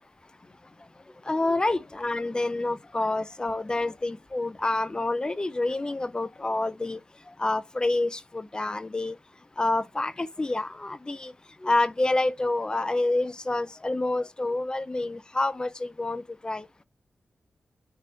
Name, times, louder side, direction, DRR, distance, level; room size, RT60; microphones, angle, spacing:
voice 1, 1.2-7.0 7.3-9.2 9.6-11.3 11.6-16.7, left 2 dB, 25° left, 0.6 m, -28 dB
9.6 x 3.5 x 2.9 m
cardioid pair, 85°, 4 cm